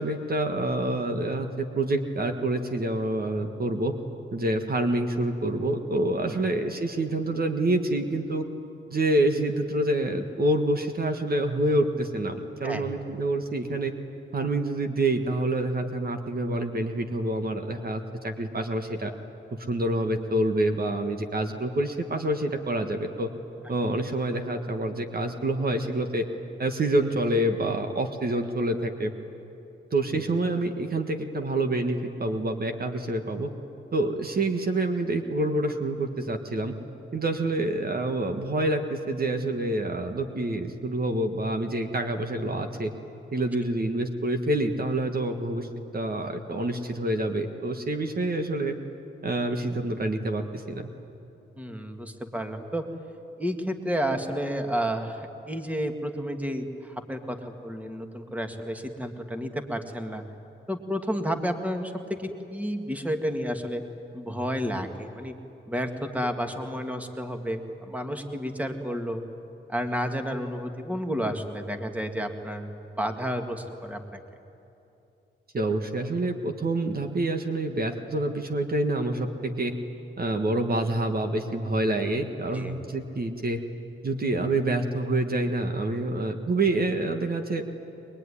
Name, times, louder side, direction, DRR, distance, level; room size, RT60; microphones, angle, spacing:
voice 1, 0.0-3.9 4.3-8.4 8.9-13.9 14.3-19.1 19.5-23.3 23.7-26.2 26.6-29.1 29.9-33.5 33.9-36.7 37.1-42.9 43.3-45.7 45.9-48.7 49.2-50.9 75.5-79.7 80.2-83.6 84.0-87.6, right 1 dB, 50° right, 5 dB, 1.7 m, -27 dB
voice 2, 51.6-52.9 53.4-60.2 60.7-63.8 64.1-65.3 65.7-69.2 69.7-72.7 73.0-74.2 82.5-82.8, equal, 5° right, 5 dB, 2.0 m, -31 dB
22.5 x 22.0 x 9.9 m, 2.8 s
cardioid pair, 80°, 21 cm